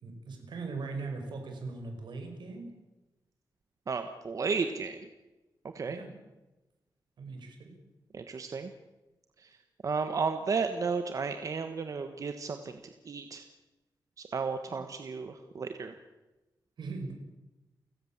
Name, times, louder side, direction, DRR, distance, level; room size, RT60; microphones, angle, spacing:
voice 1, 0.0-2.7 5.9-6.1 7.2-7.7 14.7-14.8 16.8-17.1, right 3 dB, 80° right, 5 dB, 5.6 m, -40 dB
voice 2, 3.9-5.0 5.7-6.0 8.1-8.7 9.8-12.7 13.1-13.4 14.3-15.9, right 5 dB, 45° right, 7 dB, 1.4 m, -33 dB
30.0 x 16.5 x 7.4 m, 1.1 s
wide cardioid pair, 165°, 8 cm